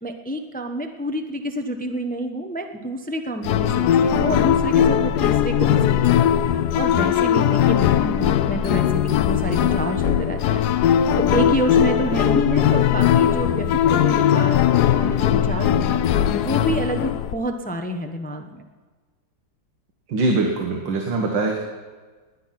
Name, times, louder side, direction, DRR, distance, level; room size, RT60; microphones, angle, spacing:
voice 1, 0.0-6.3 6.7-10.6 11.2-16.0 16.3-18.6, right 1 dB, 10° left, 5 dB, 0.4 m, -28 dB
sound 1, 3.4-17.3, left 10 dB, 70° left, 1.1 m, -19 dB
voice 2, 20.1-21.6, right 3 dB, 80° right, 2 dB, 2.1 m, -22 dB
19.5 x 9.4 x 5.9 m, 1.4 s
omnidirectional pair, 2.0 m